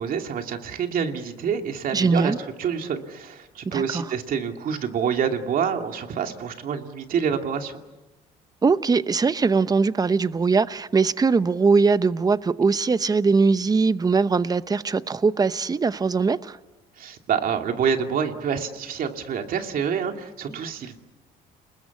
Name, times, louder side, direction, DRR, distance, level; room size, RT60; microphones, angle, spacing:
voice 1, 0.0-7.7 17.0-21.0, right 7 dB, 55° right, 2.6 m, -27 dB
voice 2, 1.9-2.4 3.6-4.1 8.6-16.6, right 4 dB, 20° right, 0.9 m, -21 dB
30.0 x 20.5 x 8.4 m
cardioid pair, 110°, 17 cm